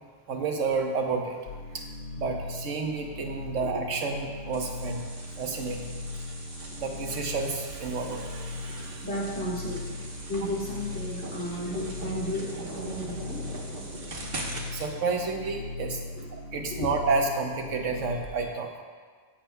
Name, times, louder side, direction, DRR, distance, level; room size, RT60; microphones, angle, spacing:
voice 1, 0.3-1.4 1.7-1.9 2.2-5.0 5.4-5.9 6.8-9.0 14.7-16.0 16.3-18.7, right 4 dB, 85° right, 3 dB, 1.3 m, -30 dB
sound 1, 1.5-18.3, left 3 dB, 65° left, 0.7 m, -39 dB
sound 2, 4.5-14.9, right 2 dB, 50° right, 1.3 m, -42 dB
voice 2, 9.0-9.8 10.3-13.4 16.1-16.3 16.7-16.9, equal, 90° left, -6 dB, 2.6 m, -33 dB
14.5 x 8.5 x 2.2 m, 1.5 s
omnidirectional pair, 1.2 m